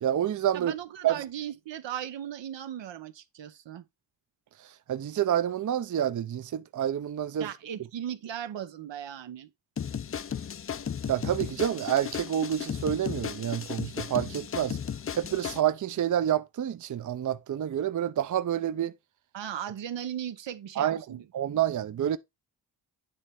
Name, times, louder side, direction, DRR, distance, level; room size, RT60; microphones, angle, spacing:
voice 1, 0.0-0.7 1.0-1.2 4.9-7.5 11.1-14.8 15.1-18.9 20.8-21.0 21.3-22.2, right 10 dB, 45° right, 0.6 m, -28 dB
voice 2, 0.5-3.8 7.4-9.5 19.3-21.2, right 10 dB, 80° right, 0.8 m, -37 dB
sound 1, 9.8-15.6, left 8 dB, 30° left, 0.4 m, -35 dB
8.8 x 3.2 x 4.3 m
cardioid pair, 50°, 43 cm